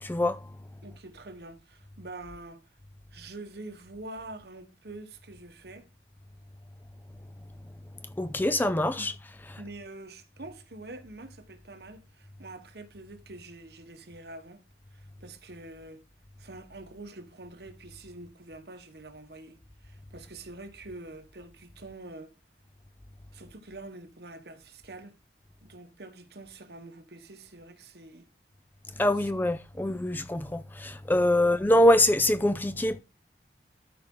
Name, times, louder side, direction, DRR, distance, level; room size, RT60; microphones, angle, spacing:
voice 1, 0.0-0.5 8.2-9.1 29.0-33.0, left 1 dB, 10° left, 0.3 m, -24 dB
voice 2, 0.8-2.7 3.1-5.9 9.0-9.1 9.6-14.6 14.9-16.0 16.4-22.3 23.3-25.2 25.6-28.3 29.2-29.3 31.4-31.6, right 2 dB, 65° right, 1.2 m, -46 dB
13.0 x 4.9 x 3.8 m
head